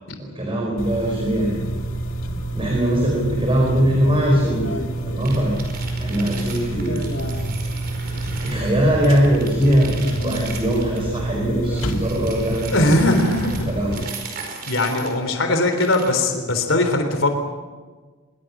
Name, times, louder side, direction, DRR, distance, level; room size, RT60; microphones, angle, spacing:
voice 1, 0.2-1.6 2.5-5.5 6.0-7.0 8.3-9.9 10.2-13.2 13.7-14.0, equal, 25° right, -1 dB, 4.9 m, -21 dB
sound 1, 0.8-14.1, right 1 dB, 90° left, 2.2 m, -27 dB
sound 2, 5.2-8.8 9.0-11.1 11.7-15.2 15.6-16.2, right 5 dB, 50° right, 4.9 m, -37 dB
voice 2, 12.7-13.7 14.7-17.4, left 1 dB, 70° left, 6 dB, 3.5 m, -20 dB
26.0 x 22.5 x 6.2 m, 1.4 s
head